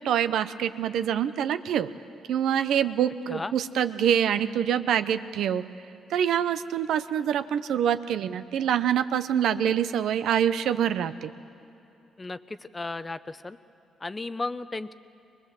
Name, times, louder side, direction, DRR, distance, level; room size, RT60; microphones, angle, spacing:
voice 1, 0.0-1.9 2.3-5.6 6.1-11.3, right 9 dB, 75° right, 12 dB, 0.7 m, -25 dB
voice 2, 12.2-13.6 14.0-14.9, left 3 dB, 25° left, 14 dB, 0.7 m, -34 dB
23.0 x 20.5 x 7.6 m, 2.9 s
cardioid pair, 90°, 0 cm